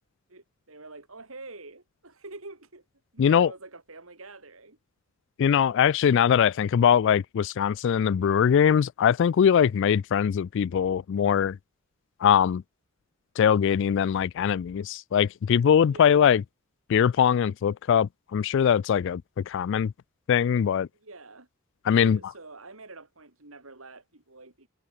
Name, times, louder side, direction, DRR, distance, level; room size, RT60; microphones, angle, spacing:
voice 1, 0.3-2.8 3.1-4.8 15.9-16.3 21.0-21.5 21.9-24.7, right 3 dB, 80° right, 4.7 m, -46 dB
voice 2, 3.2-3.5 5.4-11.6 12.2-12.6 13.4-16.4 16.9-19.9 20.3-20.9 21.9-22.2, left 8 dB, 60° left, 0.3 m, -22 dB
head